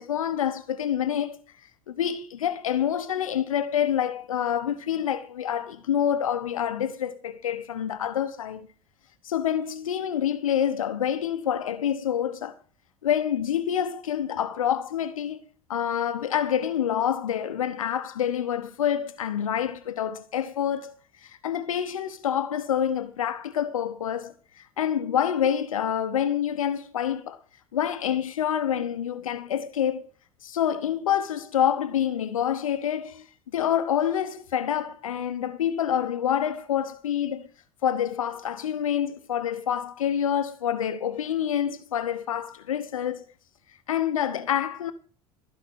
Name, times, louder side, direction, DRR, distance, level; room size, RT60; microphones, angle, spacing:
voice 1, 0.0-1.4 1.9-8.7 9.2-12.6 13.0-15.4 15.7-27.4 27.7-30.0 30.4-33.3 33.5-37.5 37.8-43.2 43.9-44.9, left 9 dB, 75° left, 1.0 m, -27 dB
15.0 x 5.9 x 8.2 m
figure-of-eight pair, 70°, 18 cm